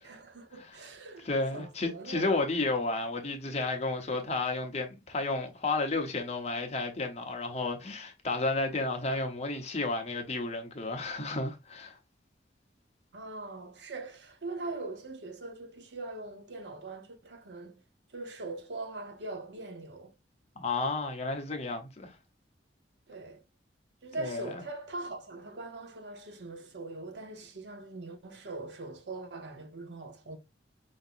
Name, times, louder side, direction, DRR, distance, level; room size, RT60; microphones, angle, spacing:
voice 1, 0.0-2.3 13.1-17.8 18.1-20.1 23.1-23.4 24.0-30.4, right 2 dB, 75° right, 0.8 m, -42 dB
voice 2, 1.2-12.0 20.6-22.1 24.2-24.5, left 3 dB, 35° left, 0.9 m, -32 dB
5.1 x 2.8 x 2.5 m
head